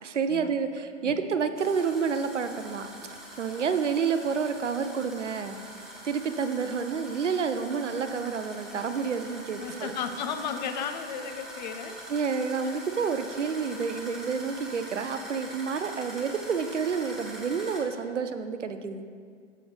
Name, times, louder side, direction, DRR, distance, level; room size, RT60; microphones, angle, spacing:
voice 1, 0.0-2.9 3.4-5.6 6.0-9.9 12.1-19.0, right 6 dB, 80° right, 9 dB, 0.6 m, -29 dB
sound 1, 1.6-17.8, right 1 dB, ahead, 0.6 m, -43 dB
voice 2, 9.6-12.0 12.6-12.7, left 6 dB, 40° left, 8 dB, 0.6 m, -34 dB
7.7 x 7.6 x 3.4 m, 2.1 s
figure-of-eight pair, 110°, 36 cm